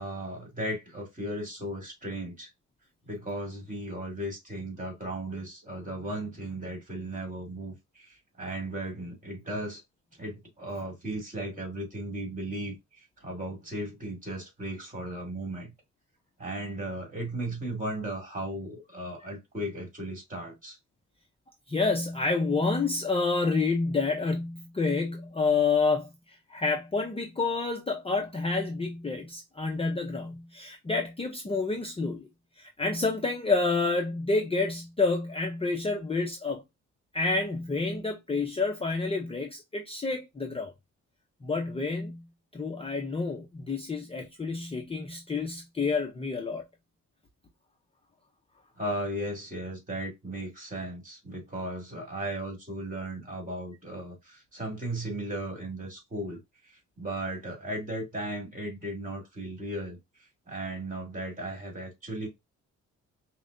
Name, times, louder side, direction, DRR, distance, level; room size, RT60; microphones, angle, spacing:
voice 1, 0.0-2.5 3.0-9.8 10.2-15.7 16.4-20.8 48.8-56.4 56.7-60.0 60.5-62.3, right 1 dB, 25° right, 2.4 m, -36 dB
voice 2, 21.7-26.1 26.5-32.3 32.6-36.6 37.1-40.7 41.4-42.2 42.5-46.6, left 3 dB, 20° left, 0.7 m, -29 dB
5.4 x 2.2 x 2.6 m
cardioid pair, 90°, 30 cm